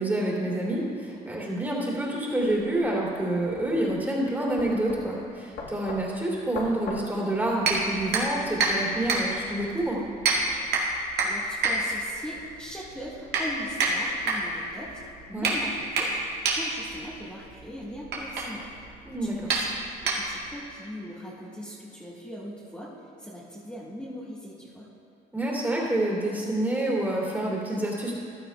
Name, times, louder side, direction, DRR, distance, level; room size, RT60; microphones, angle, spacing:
voice 1, 0.0-10.0 15.3-15.5 19.0-19.5 25.3-28.2, right 1 dB, 10° right, -4 dB, 2.7 m, -28 dB
sound 1, 2.4-8.1, left 3 dB, 75° left, 1.4 m, -41 dB
sound 2, 7.6-20.6, right 3 dB, 75° right, 1.9 m, -29 dB
voice 2, 11.2-15.0 15.3-18.7 19.2-19.7 20.0-22.9 23.2-24.9, equal, 10° left, -9 dB, 1.6 m, -40 dB
15.0 x 12.0 x 2.2 m, 2.6 s
cardioid pair, 110°, 17 cm